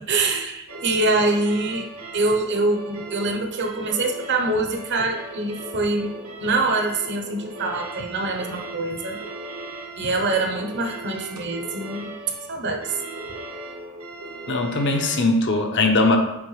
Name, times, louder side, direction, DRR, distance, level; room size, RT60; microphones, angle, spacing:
voice 1, 0.1-1.9 2.1-6.1 6.4-9.2 10.0-12.1 12.5-13.0, right 2 dB, 50° right, 3 dB, 0.9 m, -24 dB
sound 1, 0.7-15.2, right 2 dB, 75° right, 1.2 m, -37 dB
voice 2, 14.5-16.2, left 2 dB, 55° left, 3 dB, 0.9 m, -20 dB
7.2 x 4.5 x 3.3 m, 0.91 s
head